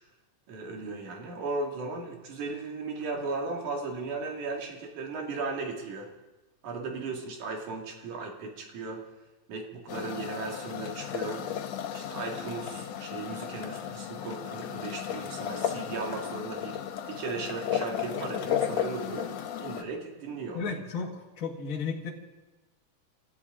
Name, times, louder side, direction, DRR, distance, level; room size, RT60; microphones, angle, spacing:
voice 1, 0.5-6.1 6.6-9.0 9.5-11.4 11.9-16.8 17.1-19.3 19.6-20.7, right 3 dB, 85° right, 1 dB, 3.6 m, -36 dB
sound 1, 9.9-19.8, left 9 dB, 70° left, 2.0 m, -34 dB
voice 2, 20.5-21.1 21.4-22.1, left 5 dB, 35° left, 1 dB, 1.7 m, -33 dB
27.5 x 13.5 x 3.7 m, 1.1 s
omnidirectional pair, 3.4 m